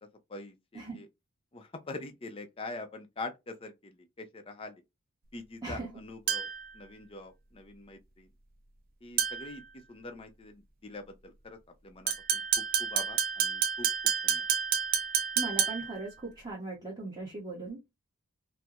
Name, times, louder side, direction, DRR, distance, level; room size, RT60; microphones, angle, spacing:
voice 1, 0.3-1.1 1.5-4.8 5.3-6.5 6.7-8.3 9.0-9.6 9.9-13.9 14.2-14.4, left 2 dB, 25° left, 0.4 m, -44 dB
sound 1, 6.3-6.7 9.2-9.6 12.1-16.0, right 7 dB, 40° right, 0.5 m, -29 dB
voice 2, 15.4-17.9, right 3 dB, 15° right, 0.9 m, -39 dB
4.3 x 2.0 x 2.4 m
head